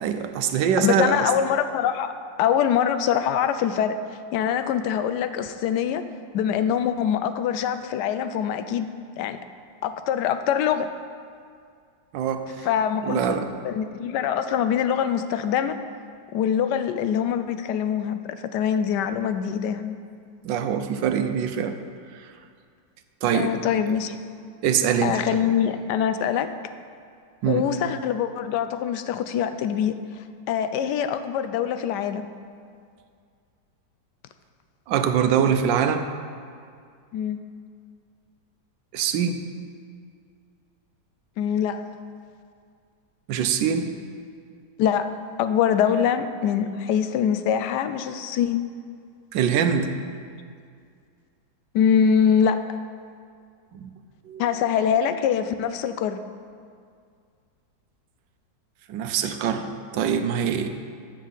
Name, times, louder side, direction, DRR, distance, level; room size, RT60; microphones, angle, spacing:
voice 1, 0.0-1.3 12.1-12.7 13.0-13.5 20.4-21.8 22.1-22.3 23.2-23.5 24.6-25.2 27.4-27.7 34.9-36.1 38.9-39.4 43.3-43.9 49.3-49.9 53.7-53.9 54.2-54.4 58.9-60.7, right 8 dB, 80° right, 8 dB, 1.3 m, -23 dB
voice 2, 0.8-4.0 4.3-6.0 6.3-8.9 9.2-9.4 9.8-10.9 12.6-13.3 13.6-15.8 16.3-18.2 18.5-20.0 23.3-24.2 25.0-26.6 27.5-32.3 37.1-37.4 41.4-41.9 44.8-48.7 51.7-52.6 54.4-56.2, left 8 dB, 75° left, 10 dB, 1.1 m, -24 dB
13.5 x 7.3 x 4.0 m, 2.2 s
omnidirectional pair, 2.0 m